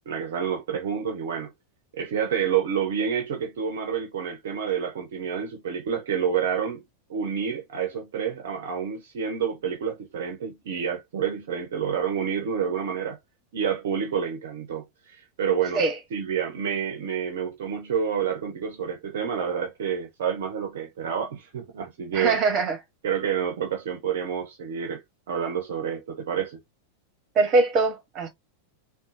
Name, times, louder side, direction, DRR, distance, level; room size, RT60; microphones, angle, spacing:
voice 1, 0.1-1.5 2.0-6.8 7.1-13.2 13.5-15.8 16.1-22.4 23.0-25.0 25.3-26.6, right 7 dB, 55° right, 0.7 m, -28 dB
voice 2, 22.1-22.8 27.3-28.3, right 3 dB, 30° right, 1.1 m, -22 dB
3.6 x 2.3 x 2.5 m
figure-of-eight pair, 90°, 0 cm